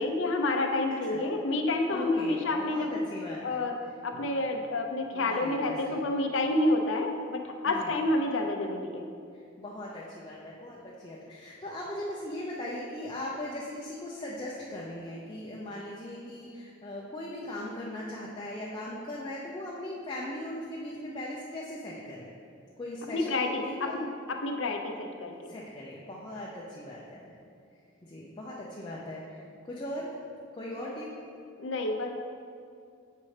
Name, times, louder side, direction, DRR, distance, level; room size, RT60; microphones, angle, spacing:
voice 1, 0.0-3.0 3.4-3.7 4.0-9.0 23.1-25.3 31.6-32.2, left 2 dB, 65° left, 3 dB, 0.6 m, -29 dB
voice 2, 1.9-3.6 4.1-4.3 5.1-6.0 7.6-7.9 9.3-22.3 22.8-24.0 25.5-27.3 28.0-30.1 30.5-31.1, left 1 dB, 20° left, -5 dB, 0.6 m, -39 dB
7.4 x 5.6 x 3.3 m, 2.4 s
head